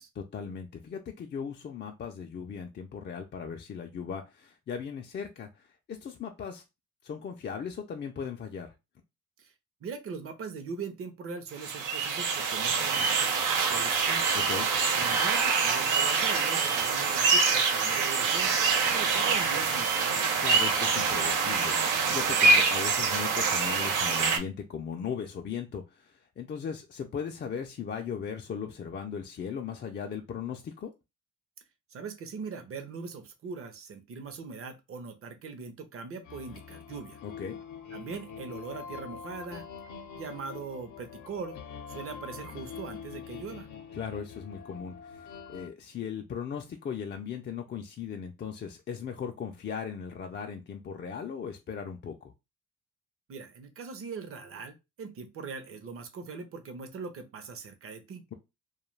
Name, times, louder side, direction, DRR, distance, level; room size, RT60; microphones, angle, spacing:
voice 1, 0.2-6.6 7.0-8.7 14.5-14.7 20.4-30.9 37.2-37.6 44.0-52.3, left 7 dB, 35° left, 2 dB, 0.4 m, -38 dB
voice 2, 9.8-14.2 15.0-20.4 31.9-37.2 37.9-39.7 40.1-41.6 41.9-43.7 53.3-58.2, right 5 dB, 50° right, 8 dB, 0.7 m, -41 dB
sound 1, 11.6-24.4, right 4 dB, 90° right, 0.6 m, -25 dB
sound 2, 36.2-45.7, left 7 dB, 80° left, 0.6 m, -44 dB
2.3 x 2.2 x 3.1 m, 0.24 s
cardioid pair, 90°, 30 cm